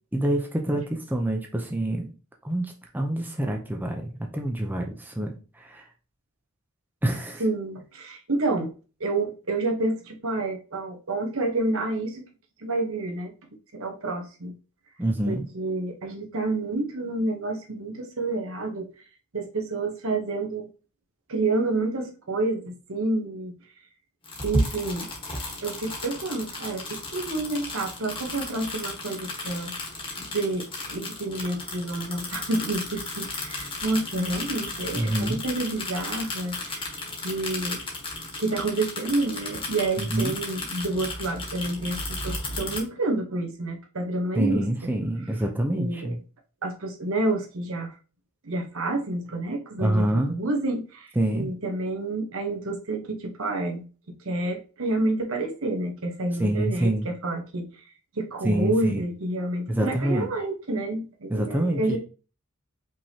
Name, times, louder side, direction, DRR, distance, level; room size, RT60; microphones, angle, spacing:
voice 1, 0.1-2.1 2.4-5.8 7.0-7.4 15.0-15.5 35.0-35.4 40.0-40.3 44.4-46.2 49.8-50.4 51.2-51.5 56.4-57.1 58.4-59.0 59.7-60.3 61.3-62.0, right 1 dB, 10° right, 2 dB, 0.6 m, -26 dB
voice 2, 7.4-8.7 9.0-12.2 12.6-13.3 13.7-14.5 15.3-18.9 19.3-20.7 21.3-23.5 24.4-25.1 25.6-29.7 30.2-36.9 37.2-37.8 38.4-44.6 45.7-46.2 46.6-48.0 48.4-57.7 58.1-62.0, right 2 dB, 65° right, 4 dB, 1.1 m, -29 dB
sound 1, 24.2-42.8, left 2 dB, 25° left, 1.4 m, -34 dB
5.3 x 3.5 x 2.8 m, 0.35 s
head